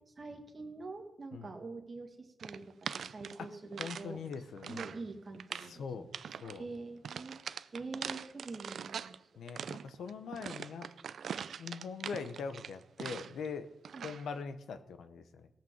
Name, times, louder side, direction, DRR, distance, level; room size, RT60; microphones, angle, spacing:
voice 1, 0.1-4.2 4.7-6.1 6.5-9.3 13.9-14.1, right 3 dB, 35° right, 4 dB, 1.9 m, -45 dB
sound 1, 2.4-4.1 4.3-5.0 5.3-5.7 6.1-6.6 7.0-9.2 9.5-13.5 13.8-14.3, right 7 dB, 65° right, 0.4 m, -42 dB
voice 2, 3.8-4.9 5.7-6.1 6.4-6.6 9.4-10.9 11.6-13.7 14.0-15.5, left 5 dB, 85° left, 10 dB, 1.0 m, -42 dB
17.5 x 5.9 x 7.3 m, 0.90 s
wide cardioid pair, 125°, 0 cm